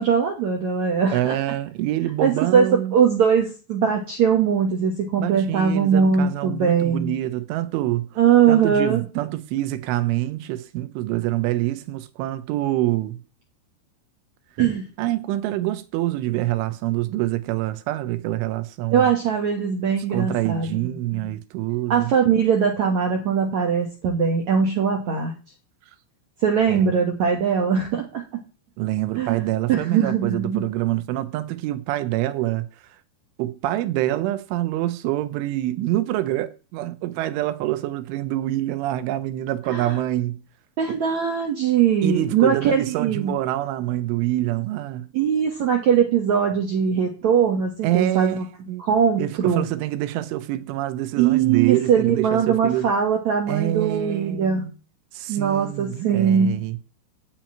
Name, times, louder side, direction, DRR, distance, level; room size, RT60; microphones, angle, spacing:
voice 1, 0.0-1.4 2.2-7.1 8.2-9.0 14.6-14.9 18.9-20.9 21.9-25.3 26.4-28.4 29.2-30.7 39.7-39.9 40.8-43.3 45.1-48.5 48.8-49.6 51.2-54.6 55.3-56.6, right 7 dB, 65° right, 1.8 m, -21 dB
voice 2, 1.1-3.0 5.2-8.2 8.5-13.2 15.0-19.1 20.1-22.1 26.7-26.9 28.8-32.7 33.4-40.4 42.0-45.1 47.8-48.8 49.2-52.9 53.5-54.7 55.1-56.8, right 15 dB, 85° right, 3.4 m, -26 dB
9.7 x 6.0 x 8.6 m
omnidirectional pair, 5.5 m